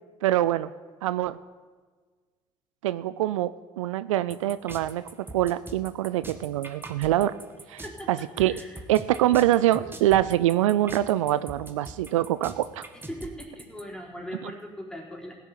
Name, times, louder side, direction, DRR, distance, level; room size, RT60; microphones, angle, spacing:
voice 1, 0.2-0.7 1.0-1.4 2.8-3.5 3.8-5.0 5.3-7.3 7.7-7.8 8.1-8.6 8.9-12.8 14.4-14.5, right 14 dB, 85° right, 15 dB, 0.4 m, -24 dB
sound 1, 4.3-13.8, right 2 dB, 15° right, 1.6 m, -42 dB
voice 2, 7.8-8.8 13.1-15.4, equal, 5° left, -2 dB, 4.2 m, -40 dB
15.5 x 7.0 x 8.3 m, 1.5 s
hypercardioid pair, 60°, 16 cm